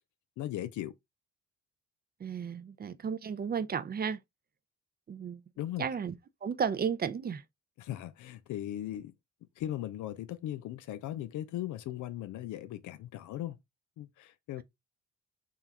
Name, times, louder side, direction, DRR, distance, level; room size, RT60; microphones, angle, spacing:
voice 1, 0.4-0.9 5.6-5.9 7.8-9.1 9.6-13.6 14.0-14.6, left 13 dB, 80° left, 0.5 m, -38 dB
voice 2, 2.2-4.2 5.1-5.4 5.8-6.1 6.4-7.4, right 7 dB, 30° right, 0.5 m, -33 dB
3.7 x 2.3 x 4.2 m
cardioid pair, 90°, 30 cm